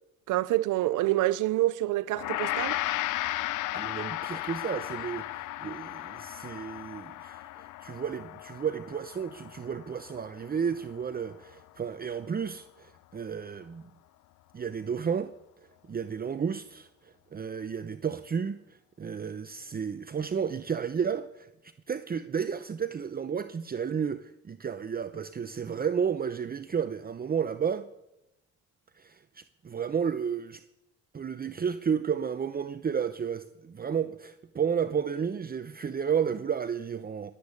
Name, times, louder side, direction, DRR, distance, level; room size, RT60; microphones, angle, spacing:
voice 1, 0.3-2.8, right 16 dB, 80° right, 0.6 m, -27 dB
Gong, 2.1-11.5, left 16 dB, 80° left, 0.6 m, -35 dB
voice 2, 3.7-13.9 14.5-15.3 15.9-27.9 28.9-30.6 31.1-37.3, right 7 dB, 30° right, 0.7 m, -32 dB
20.5 x 8.3 x 8.4 m
cardioid pair, 90°, 30 cm